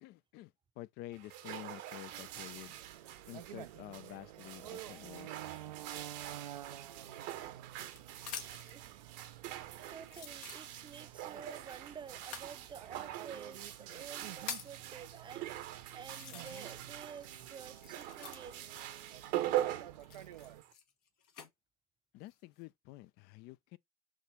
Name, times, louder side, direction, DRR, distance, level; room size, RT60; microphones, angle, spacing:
voice 1, 0.0-2.7 3.3-5.3 22.1-23.8, left 16 dB, 55° left, 0.4 m, -49 dB
sound 1, 1.1-20.7, right 13 dB, 60° right, 0.8 m, -43 dB
sound 2, 2.1-20.6, right 12 dB, 85° right, 0.4 m, -51 dB
sound 3, 7.1-8.8 9.5-9.6 10.0-11.1 12.2-12.5 13.4-13.5 14.0-14.8 15.5-15.6 16.0-16.9 17.2-18.7 19.9-21.5 22.1-22.6, left 7 dB, 70° left, 1.1 m, -47 dB
voice 2, 8.6-9.2 9.9-18.7, right 6 dB, 25° right, 0.6 m, -51 dB
6.1 x 2.5 x 3.1 m
hypercardioid pair, 70°, 20 cm